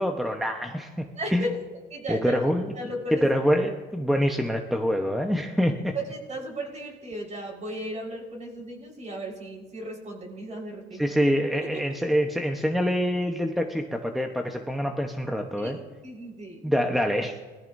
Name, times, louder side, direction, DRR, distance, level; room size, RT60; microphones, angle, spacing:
voice 1, 0.0-1.0 1.3-1.5 2.1-2.7 3.1-5.9 11.0-15.8 16.6-17.4, equal, ahead, 3 dB, 1.1 m, -25 dB
voice 2, 1.1-1.6 1.9-2.4 2.7-3.2 6.1-11.1 15.6-16.6, equal, 40° right, -1 dB, 4.9 m, -35 dB
21.0 x 14.5 x 2.7 m, 1.4 s
cardioid pair, 95°, 19 cm